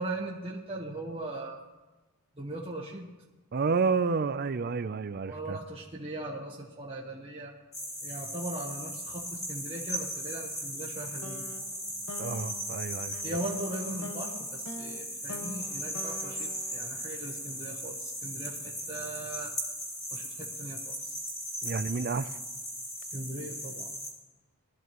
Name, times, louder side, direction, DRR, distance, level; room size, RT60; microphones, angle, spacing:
voice 1, 0.0-1.6 2.4-3.1 5.3-7.5 8.0-11.5 13.2-19.5 20.1-21.2 23.1-23.9, right 2 dB, 25° right, 1.2 m, -39 dB
voice 2, 3.5-5.6 12.2-13.2 21.6-22.4, right 4 dB, 45° right, 0.4 m, -30 dB
sound 1, 7.7-24.1, equal, 15° left, 2.4 m, -37 dB
sound 2, 11.2-17.6, left 2 dB, 80° left, 1.4 m, -45 dB
20.0 x 13.0 x 3.0 m
head